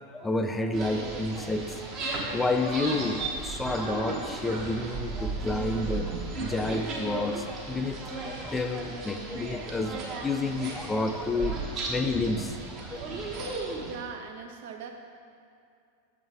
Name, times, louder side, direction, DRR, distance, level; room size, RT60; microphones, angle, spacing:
voice 1, 0.1-1.9 2.3-13.0, left 2 dB, 10° left, 6 dB, 0.4 m, -30 dB
sound 1, 0.7-14.0, right 3 dB, 35° right, 1.1 m, -35 dB
voice 2, 13.8-14.9, right 6 dB, 55° right, 4 dB, 0.6 m, -40 dB
7.1 x 3.9 x 4.7 m, 2.4 s
figure-of-eight pair, 90°, 0 cm